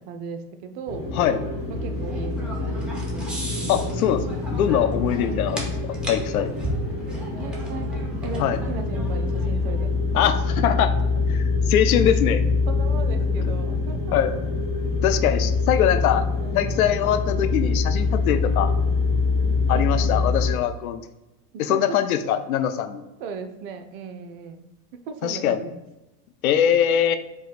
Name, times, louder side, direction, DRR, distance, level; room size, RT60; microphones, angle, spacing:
voice 1, 0.0-1.1 1.7-3.7 5.2-5.7 7.4-7.9 8.2-10.0 10.7-10.8 12.7-14.2 15.9-17.1 18.7-19.0 19.7-20.3 21.5-22.0 23.2-24.7 24.9-25.7, right 5 dB, 40° right, 8 dB, 0.5 m, -37 dB
sound 1, 0.9-20.5, left 3 dB, 25° left, 1.5 m, -25 dB
sound 2, 1.3-9.8, equal, ahead, 1.0 m, -37 dB
voice 2, 3.7-5.7 6.1-6.5 8.4-8.6 10.1-10.9 11.3-12.4 14.1-14.3 14.7-16.3 16.5-18.7 19.7-21.0 21.6-23.1 25.2-25.6 26.4-27.2, left 9 dB, 65° left, 10 dB, 0.5 m, -22 dB
4.6 x 2.2 x 4.0 m, 0.98 s
figure-of-eight pair, 85°, 47 cm